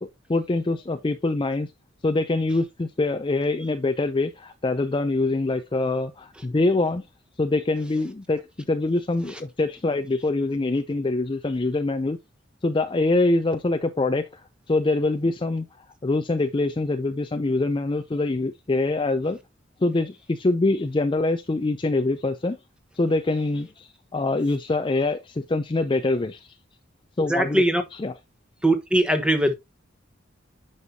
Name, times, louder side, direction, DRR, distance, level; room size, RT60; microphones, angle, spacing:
voice 1, 0.0-1.7 2.0-7.0 7.4-8.4 8.7-12.2 12.6-15.7 16.0-19.4 19.8-22.6 23.0-26.5 27.2-27.6 27.9-28.1, left 2 dB, 25° left, 0.4 m, -24 dB
voice 2, 27.2-27.8 28.6-29.5, right 1 dB, 5° right, 1.1 m, -21 dB
9.6 x 5.5 x 2.8 m
head